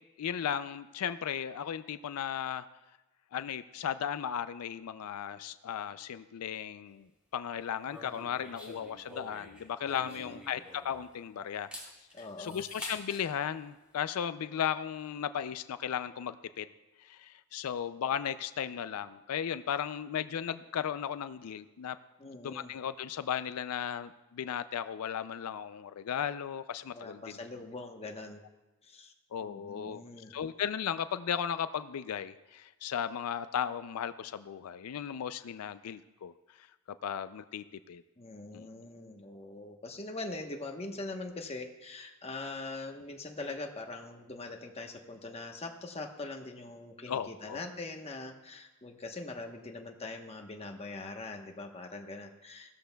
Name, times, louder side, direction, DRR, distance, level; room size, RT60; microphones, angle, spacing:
voice 1, 0.2-2.7 3.3-7.1 7.3-11.7 12.2-16.7 17.0-22.0 22.4-27.4 29.3-30.0 30.3-36.3 36.6-36.7 37.0-38.0 38.5-38.7 47.1-47.6, left 8 dB, 90° left, 12 dB, 0.4 m, -36 dB
sound 1, 7.9-11.1 11.5-13.2, left 1 dB, 5° right, 2.9 m, -47 dB
voice 2, 9.8-10.5 12.1-12.6 22.2-22.7 26.9-28.4 28.8-29.1 29.4-30.3 38.2-52.8, left 2 dB, 30° left, 3 dB, 1.1 m, -42 dB
17.5 x 13.0 x 2.3 m, 1.1 s
head